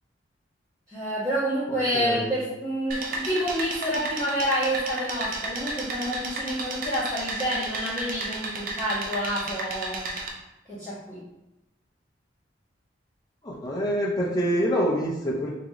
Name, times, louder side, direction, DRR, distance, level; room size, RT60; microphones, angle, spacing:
voice 1, 0.9-10.1 10.7-11.2, equal, 20° right, -13 dB, 1.5 m, -28 dB
voice 2, 1.7-2.3 13.4-15.5, equal, 20° left, -4 dB, 0.9 m, -26 dB
sound 1, 2.9-10.3, right 2 dB, 50° right, 0.6 m, -33 dB
3.8 x 3.7 x 3.1 m, 0.95 s
head